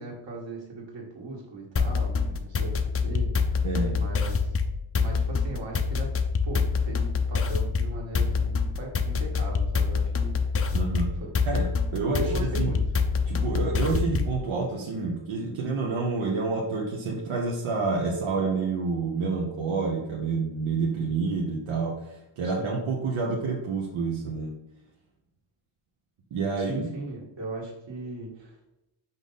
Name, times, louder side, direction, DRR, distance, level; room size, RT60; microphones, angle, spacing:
voice 1, 0.0-3.7 4.0-4.5 5.0-6.1 6.4-10.7 11.2-11.3 12.1-12.8 22.4-22.9 26.6-28.6, right 2 dB, 60° right, -2 dB, 2.1 m, -38 dB
sound 1, 1.8-14.4, left 5 dB, 30° left, 0.5 m, -26 dB
voice 2, 3.6-4.0 10.7-11.2 11.4-12.3 12.6-12.7 13.3-24.5 26.3-26.9, right 4 dB, 85° right, -1 dB, 1.2 m, -28 dB
5.8 x 5.4 x 4.0 m, 0.95 s
wide cardioid pair, 165°, 49 cm